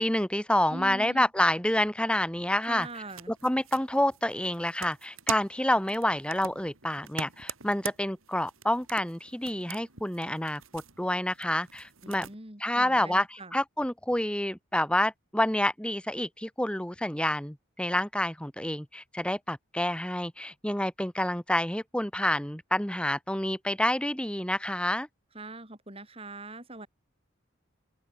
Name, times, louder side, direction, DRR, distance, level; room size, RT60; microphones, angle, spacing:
voice 1, 0.0-2.9 3.4-12.3 12.6-25.1, left 1 dB, 5° left, 1.3 m, -28 dB
voice 2, 0.7-1.3 2.6-3.3 12.0-13.5 25.3-26.9, right 2 dB, 25° right, 4.2 m, -42 dB
sound 1, 2.7-12.4, right 7 dB, 75° right, 5.0 m, -44 dB
open air
head